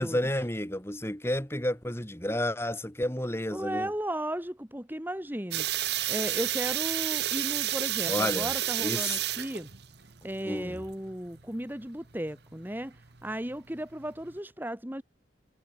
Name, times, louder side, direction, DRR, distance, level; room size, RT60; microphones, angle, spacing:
voice 1, 0.0-3.9 8.1-8.5 8.8-9.2 10.2-10.8, left 1 dB, 15° left, 3.1 m, -31 dB
voice 2, 3.5-5.7 6.1-9.7 10.2-12.9 13.2-15.0, right 1 dB, 10° right, 2.3 m, -35 dB
sound 1, 5.5-14.4, right 13 dB, 65° right, 1.3 m, -31 dB
head